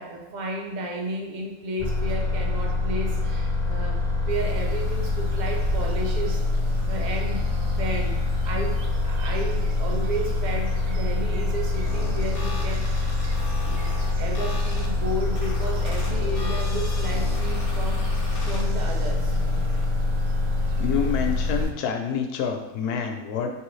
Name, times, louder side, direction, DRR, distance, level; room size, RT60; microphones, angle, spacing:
voice 1, 0.0-6.4 6.9-8.2 8.4-8.8 9.0-13.1 13.6-13.9 14.1-19.4, right 1 dB, 50° right, 0 dB, 0.5 m, -33 dB
sound 1, 1.8-21.6, left 2 dB, 25° left, 0.3 m, -25 dB
sound 2, 4.3-21.7, right 2 dB, 85° right, 1.1 m, -39 dB
sound 3, 11.9-19.9, left 3 dB, 50° left, 0.7 m, -39 dB
voice 2, 20.8-23.5, left 7 dB, 85° left, 4 dB, 1.1 m, -27 dB
4.6 x 3.0 x 3.1 m, 1.1 s
omnidirectional pair, 1.6 m